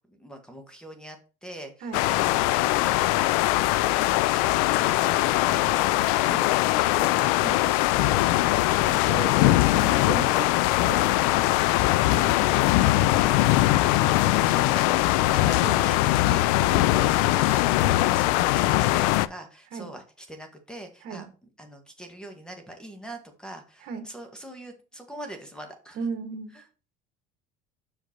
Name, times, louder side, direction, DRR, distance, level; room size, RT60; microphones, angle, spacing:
voice 1, 0.1-3.6 3.9-4.6 4.9-8.5 11.4-11.6 13.8-21.3 21.6-26.0 26.5-26.6, right 1 dB, 5° left, 5 dB, 1.4 m, -43 dB
sound 1, 1.9-19.3, left 17 dB, 75° left, 0.4 m, -21 dB
voice 2, 8.8-11.1 12.1-13.1 15.6-15.8 16.7-16.9 19.7-19.9 21.0-21.2 23.8-24.0 25.9-26.5, right 6 dB, 60° right, 7 dB, 1.4 m, -37 dB
6.1 x 5.1 x 4.3 m, 0.35 s
supercardioid pair, 110°, 18 cm